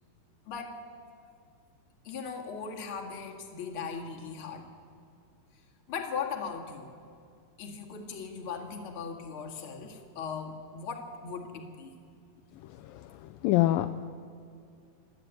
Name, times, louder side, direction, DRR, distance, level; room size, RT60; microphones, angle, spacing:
voice 1, 0.5-0.8 2.0-4.7 5.9-6.9 7.6-11.9, left 5 dB, 40° left, 2 dB, 2.3 m, -38 dB
voice 2, 12.8-13.9, left 15 dB, 85° left, 9 dB, 2.1 m, -27 dB
27.0 x 10.5 x 9.4 m, 2.4 s
omnidirectional pair, 4.6 m